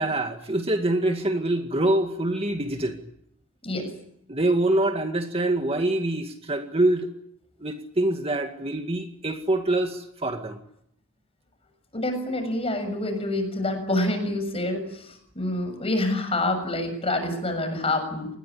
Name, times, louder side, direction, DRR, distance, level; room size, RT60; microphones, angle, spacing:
voice 1, 0.0-3.0 4.3-7.1 7.6-10.6, right 1 dB, 30° right, 5 dB, 2.1 m, -25 dB
voice 2, 11.9-18.3, left 1 dB, 30° left, 7 dB, 7.0 m, -27 dB
27.5 x 20.5 x 8.6 m, 0.73 s
head